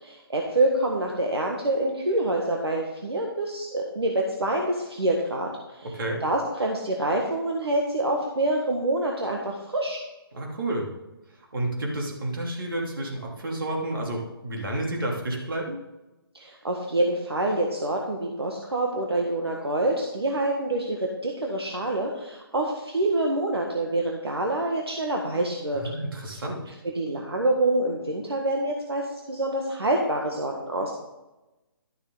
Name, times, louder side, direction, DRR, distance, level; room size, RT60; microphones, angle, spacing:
voice 1, 0.0-5.9 6.2-10.0 16.3-25.8 26.3-26.4 26.8-30.9, right 1 dB, 80° right, 0 dB, 1.6 m, -26 dB
voice 2, 10.3-10.9 11.5-15.8 25.7-26.6, right 1 dB, 60° right, -1 dB, 3.0 m, -30 dB
12.0 x 6.7 x 3.8 m, 1.0 s
figure-of-eight pair, 145°, 13 cm